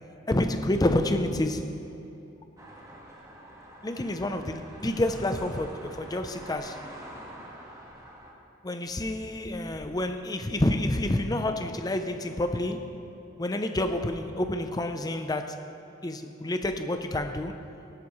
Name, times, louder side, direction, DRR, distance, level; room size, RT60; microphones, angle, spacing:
voice 1, 0.3-1.8 3.8-6.9 8.6-13.0 13.4-15.7 16.0-17.6, left 1 dB, 20° left, 8 dB, 0.6 m, -28 dB
sound 1, 2.6-8.3, right 1 dB, 20° right, 1.6 m, -46 dB
16.5 x 12.5 x 3.2 m, 2.9 s
head